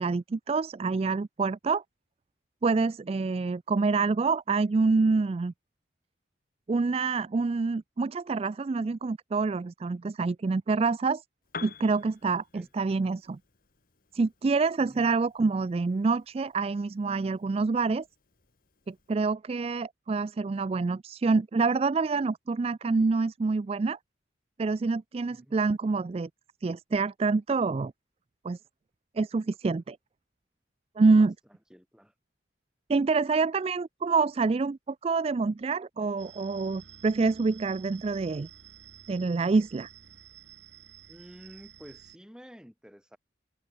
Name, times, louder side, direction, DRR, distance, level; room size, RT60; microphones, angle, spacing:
voice 1, 0.0-1.8 2.6-5.5 6.7-11.2 11.6-13.4 14.1-18.0 18.9-24.0 24.6-26.3 26.6-27.9 28.4-28.6 29.2-30.0 31.0-31.3 32.9-38.5 39.1-39.9, right 4 dB, 35° right, 0.3 m, -27 dB
Piano, 11.4-19.2, left 5 dB, 50° left, 2.9 m, -50 dB
voice 2, 25.3-25.6 31.2-32.1 41.1-43.2, equal, 5° right, 5.0 m, -51 dB
sound 1, 36.2-42.2, right 9 dB, 85° right, 3.5 m, -51 dB
head